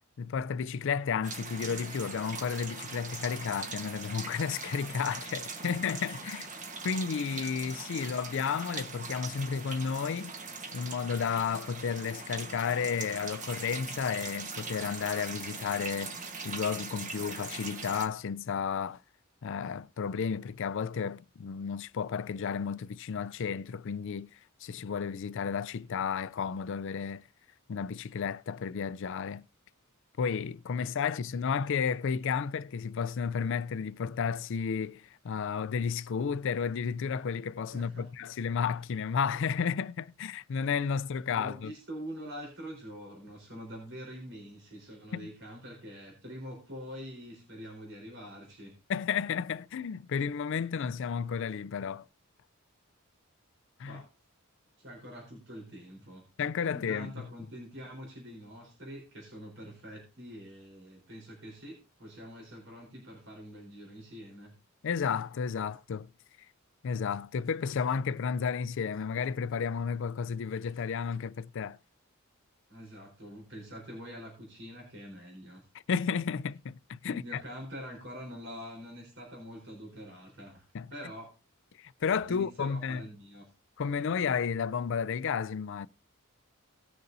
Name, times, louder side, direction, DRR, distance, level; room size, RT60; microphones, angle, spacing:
voice 1, 0.2-6.5 6.8-10.4 10.7-19.0 19.4-27.3 27.7-29.5 30.2-41.7 45.1-45.3 48.9-52.1 53.8-54.0 56.4-57.1 64.8-66.1 66.8-71.8 75.9-77.4 80.7-80.9 81.8-83.1 83.8-85.9, left 6 dB, 65° left, 0.4 m, -32 dB
sound 1, 1.2-18.1, right 4 dB, 35° right, 1.2 m, -41 dB
voice 2, 37.7-38.1 41.3-48.8 53.9-54.1 54.8-56.2 56.7-64.5 72.7-75.7 77.0-81.3 82.3-83.4, equal, 60° right, 4.1 m, -45 dB
18.5 x 6.7 x 2.6 m
head